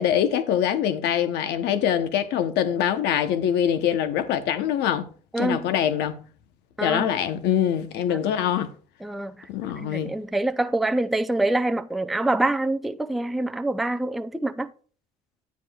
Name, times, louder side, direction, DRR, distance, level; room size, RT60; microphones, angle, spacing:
voice 1, 0.0-5.1 5.4-6.2 6.8-8.7 9.5-10.1, left 9 dB, 85° left, 0.8 m, -24 dB
voice 2, 5.3-5.6 6.8-7.2 8.1-8.2 9.0-9.5 9.8-14.7, right 2 dB, ahead, 0.4 m, -26 dB
10.0 x 9.4 x 2.3 m
cardioid pair, 110°, 17 cm